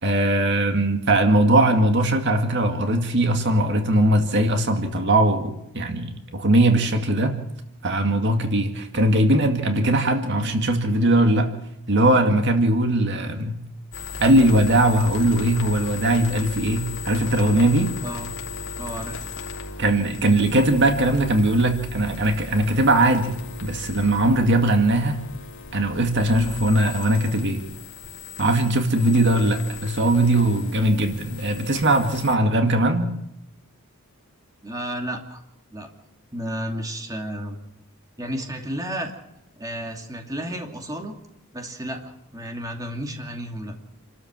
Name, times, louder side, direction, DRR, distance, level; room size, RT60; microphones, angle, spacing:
voice 1, 0.0-7.4 7.8-11.5 11.9-13.6 14.2-17.9 19.8-23.4 23.6-25.2 25.7-27.6 28.4-33.1, right 1 dB, 55° right, 5 dB, 2.2 m, -20 dB
sound 1, 13.9-32.3, left 4 dB, 55° left, 3.2 m, -37 dB
voice 2, 18.0-18.3 18.8-19.2 34.6-35.4 35.7-35.9 36.3-37.6 38.2-39.2 39.6-41.1 41.5-43.8, equal, 15° right, 3 dB, 2.6 m, -32 dB
28.5 x 13.0 x 7.6 m, 0.82 s
head